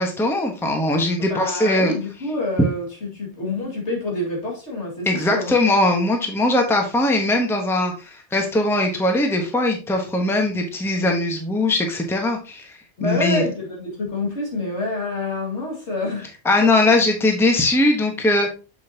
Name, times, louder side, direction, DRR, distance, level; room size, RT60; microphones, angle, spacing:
voice 1, 0.0-1.9 5.1-12.7 13.0-13.4 16.4-18.5, left 2 dB, ahead, 1.1 m, -20 dB
voice 2, 1.2-5.5 13.0-16.3 16.6-16.7, left 2 dB, 65° left, 2.5 m, -27 dB
7.4 x 5.8 x 2.8 m
omnidirectional pair, 1.2 m